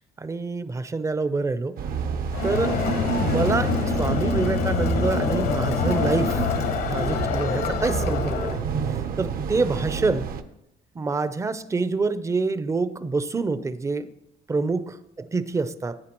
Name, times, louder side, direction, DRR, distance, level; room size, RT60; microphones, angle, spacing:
voice 1, 0.2-1.8 2.4-2.8 3.1-6.4 6.9-8.6 9.2-10.3 10.9-14.1 14.5-16.0, right 3 dB, 15° right, 14 dB, 0.5 m, -26 dB
sound 1, 1.8-10.4, right 6 dB, 60° right, 0.7 m, -30 dB
Crowd, 2.3-8.6, left 5 dB, 65° left, 1.0 m, -25 dB
15.0 x 9.2 x 3.0 m, 0.83 s
cardioid pair, 110°, 17 cm